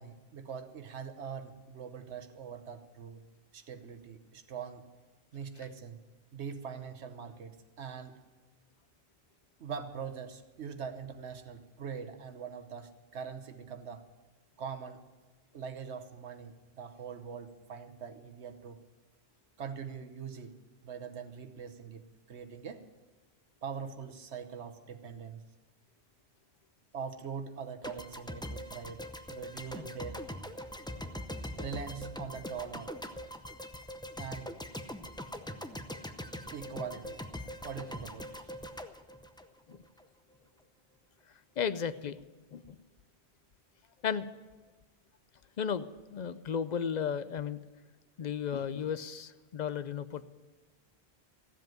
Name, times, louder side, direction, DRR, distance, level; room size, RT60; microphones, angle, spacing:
voice 1, 0.0-3.2 3.5-4.8 5.3-6.0 6.3-8.2 9.6-14.0 14.6-15.0 15.5-18.8 19.6-20.5 20.8-22.8 23.6-25.4 26.9-29.0 29.3-30.2 31.6-32.9 34.2-34.5 36.5-37.2 37.6-38.5, right 6 dB, 85° right, 8 dB, 1.3 m, -42 dB
sound 1, 27.8-40.0, equal, 5° left, 0.5 m, -42 dB
voice 2, 41.6-42.2 42.5-42.8 44.0-44.3 45.6-47.6 48.2-50.2, left 7 dB, 50° left, 13 dB, 0.5 m, -34 dB
14.5 x 7.8 x 9.2 m, 1.3 s
omnidirectional pair, 1.1 m